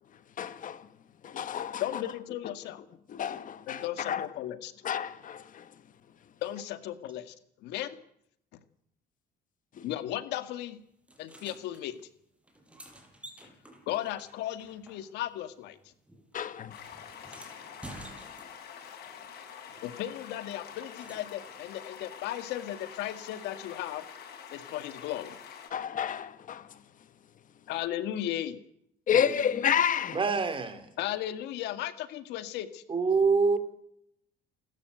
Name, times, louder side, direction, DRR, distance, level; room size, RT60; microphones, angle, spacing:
voice 1, 0.4-0.9 1.2-2.0 3.1-4.3 4.8-5.7 9.8-9.9 16.3-16.7 17.3-17.5 25.7-26.8 29.1-30.2, left 8 dB, 50° left, 1.5 m, -30 dB
voice 2, 1.8-2.8 3.7-4.7 6.4-7.3 7.6-8.0 9.8-10.8 11.2-12.1 13.9-15.8 19.8-24.1 24.5-25.4 27.7-28.6 31.0-32.8, left 12 dB, 85° left, 2.0 m, -35 dB
sound 1, 11.1-11.8 12.4-15.4 15.7-18.8 20.3-21.6 23.6-23.7, right 1 dB, 5° right, 6.1 m, -51 dB
sound 2, 16.7-25.7, left 7 dB, 70° left, 6.6 m, -46 dB
voice 3, 30.1-30.9 32.9-33.6, right 4 dB, 30° right, 3.7 m, -26 dB
29.0 x 13.0 x 8.1 m
cardioid pair, 110°, 17 cm